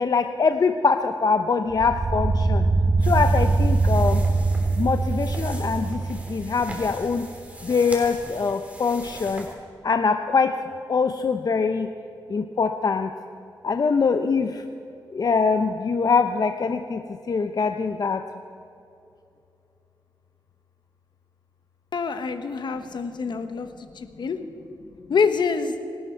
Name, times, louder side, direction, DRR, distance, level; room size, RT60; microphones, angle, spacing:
voice 1, 0.0-2.6 3.0-4.2 4.8-7.3 7.6-9.5 9.8-10.6 10.9-11.9 12.3-13.1 13.6-14.6 15.1-17.0 17.3-18.2, left 5 dB, 50° left, 7 dB, 0.7 m, -23 dB
sound 1, 1.7-7.0, right 3 dB, 50° right, 1.2 m, -23 dB
sound 2, 3.0-9.5, right 1 dB, 15° right, 3.5 m, -40 dB
voice 2, 21.9-23.7 23.9-24.4 25.1-25.7, left 5 dB, 70° left, 9 dB, 1.2 m, -25 dB
26.0 x 12.0 x 4.6 m, 2.8 s
cardioid pair, 75°, 8 cm